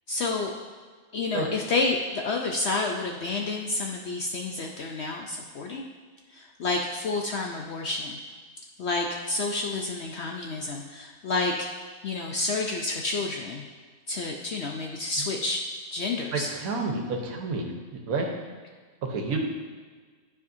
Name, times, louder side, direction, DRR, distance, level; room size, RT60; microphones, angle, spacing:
voice 1, 0.1-0.5 1.1-5.8 6.3-8.2 8.8-11.5 12.0-13.6 14.1-15.6 15.9-16.5, left 3 dB, 65° left, 1 dB, 0.7 m, -29 dB
voice 2, 16.3-17.7 17.9-18.3 19.0-19.4, right 3 dB, 70° right, 2 dB, 1.4 m, -29 dB
12.0 x 4.8 x 2.7 m, 1.5 s
omnidirectional pair, 1.6 m